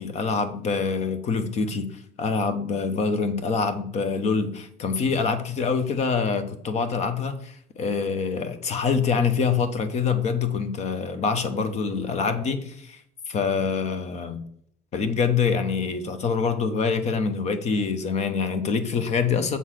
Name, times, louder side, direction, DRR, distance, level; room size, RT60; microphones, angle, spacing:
voice 1, 0.0-13.0 13.3-14.4 14.9-19.6, left 5 dB, 40° left, 10 dB, 0.9 m, -25 dB
7.0 x 4.0 x 6.3 m, 0.65 s
cardioid pair, 155°, 18 cm